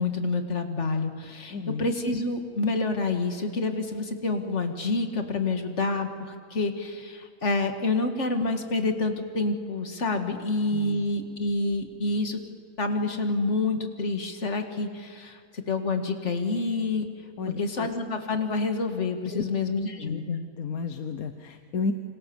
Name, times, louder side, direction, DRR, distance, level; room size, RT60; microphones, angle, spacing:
voice 1, 0.0-12.4 12.8-17.1 17.6-20.4, left 3 dB, 50° left, 5 dB, 2.2 m, -28 dB
voice 2, 1.5-1.9 10.7-11.0 17.4-17.9 19.3-19.4 20.0-20.2 20.6-21.9, left 5 dB, 70° left, 8 dB, 1.4 m, -32 dB
27.5 x 26.0 x 7.1 m, 2.1 s
omnidirectional pair, 1.6 m